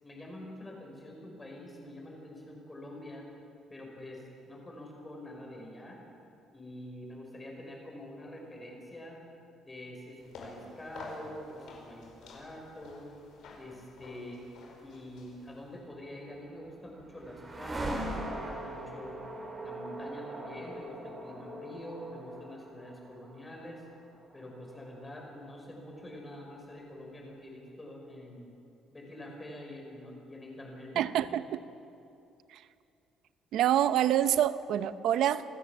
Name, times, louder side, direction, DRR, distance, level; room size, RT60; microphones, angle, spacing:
voice 1, 0.0-3.2 3.7-6.0 6.5-9.2 9.6-13.1 13.6-14.4 14.8-19.2 19.6-23.8 24.3-28.5 28.9-31.0 31.3-31.4, left 1 dB, 15° left, 0 dB, 5.4 m, -46 dB
sound 1, 10.2-15.8, left 3 dB, 70° left, 5.1 m, -50 dB
sound 2, 16.2-26.3, right 1 dB, 25° right, 4.9 m, -41 dB
voice 2, 31.0-31.6 32.5-32.6 33.5-35.4, right 11 dB, 70° right, 13 dB, 0.8 m, -26 dB
28.0 x 14.5 x 7.3 m, 2.7 s
cardioid pair, 140°, 0 cm